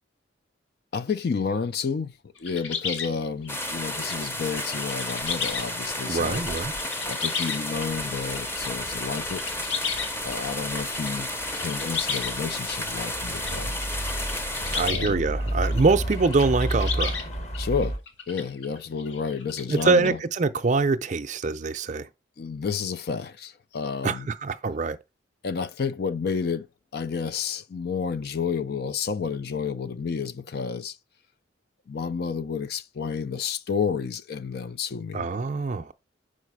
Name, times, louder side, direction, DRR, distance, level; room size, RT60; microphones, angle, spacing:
voice 1, 0.9-2.1 2.4-6.4 7.1-9.4 10.2-13.8 14.9-15.2 17.6-18.0 18.3-20.2 22.4-24.3 25.4-26.7 26.9-31.0 31.9-35.3, left 5 dB, 55° left, 0.4 m, -30 dB
sound 1, 2.4-8.7 9.0-10.4 10.7-12.6 13.0-15.1 15.4-20.1, left 6 dB, 75° left, 1.4 m, -34 dB
sound 2, 3.5-14.9, left 1 dB, 10° left, 0.7 m, -32 dB
voice 2, 6.1-6.7 14.7-17.2 19.7-22.1 24.0-25.0 35.1-35.9, right 4 dB, 40° right, 0.5 m, -24 dB
sound 3, 7.9-18.0, right 1 dB, 35° left, 1.0 m, -33 dB
6.3 x 5.0 x 4.7 m
head